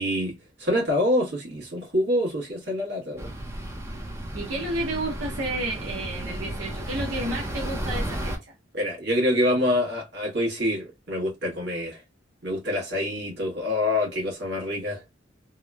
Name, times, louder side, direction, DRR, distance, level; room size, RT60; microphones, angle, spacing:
voice 1, 0.0-3.3 8.7-12.0 12.4-15.0, left 1 dB, 60° right, 1.2 m, -26 dB
sound 1, 3.2-8.4, right 1 dB, 15° right, 0.5 m, -33 dB
voice 2, 4.3-8.5, right 1 dB, 75° right, 0.7 m, -31 dB
3.0 x 2.0 x 2.3 m
head